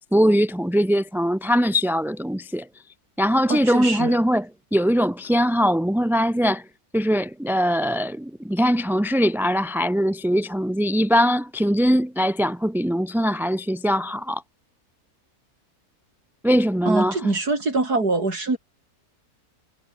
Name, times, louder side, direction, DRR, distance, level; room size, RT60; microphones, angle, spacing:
voice 1, 0.1-2.7 3.2-6.6 6.9-14.4 16.4-17.1, equal, ahead, 1.5 m, -21 dB
voice 2, 3.5-4.2 16.9-18.6, right 3 dB, 85° right, 5.3 m, -23 dB
omnidirectional pair, 1.6 m